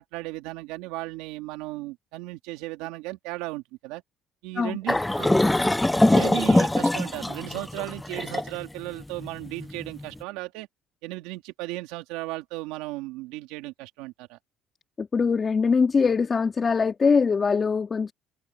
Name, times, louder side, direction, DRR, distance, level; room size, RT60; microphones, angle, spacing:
voice 1, 0.0-4.0 4.4-5.3 6.1-10.7 11.0-14.4, right 19 dB, 90° right, 2.9 m, -36 dB
sound 1, 4.9-10.0, left 1 dB, 10° left, 0.5 m, -23 dB
voice 2, 15.0-18.1, left 5 dB, 35° left, 2.8 m, -22 dB
supercardioid pair, 85°, 0 cm